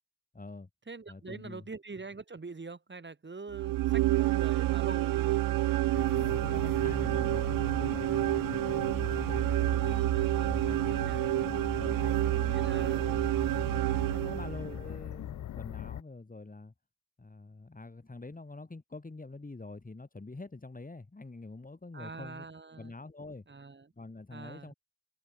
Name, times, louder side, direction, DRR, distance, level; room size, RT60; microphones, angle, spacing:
voice 1, 0.3-0.7 1.1-1.7 6.1-10.1 10.5-13.2 14.1-16.7 17.2-22.5 22.8-23.5 24.0-24.7, left 3 dB, 25° left, 7.7 m, -46 dB
voice 2, 0.9-5.4 10.9-11.2 12.5-13.2 21.9-22.9 23.5-23.9 24.3-24.7, right 4 dB, 30° right, 7.2 m, -44 dB
sound 1, 3.5-14.8, right 16 dB, 70° right, 0.6 m, -29 dB
sound 2, 5.9-16.0, left 12 dB, 55° left, 0.7 m, -41 dB
supercardioid pair, 55°, 35 cm